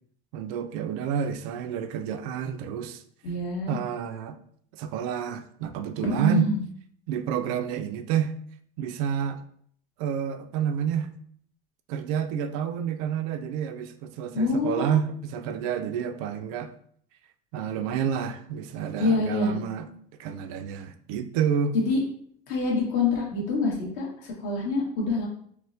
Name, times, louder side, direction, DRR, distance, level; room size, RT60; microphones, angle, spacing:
voice 1, 0.3-3.0 3.7-4.4 4.7-6.5 7.1-8.3 8.8-9.4 10.0-11.1 11.9-16.7 17.5-19.9 20.2-21.8, right 8 dB, 85° right, 0.4 m, -29 dB
voice 2, 3.2-3.8 6.0-6.6 14.3-15.0 19.0-19.5 21.7-22.0 22.5-25.3, left 3 dB, 65° left, 1.3 m, -26 dB
4.3 x 2.1 x 2.6 m
cardioid pair, 145°, 18 cm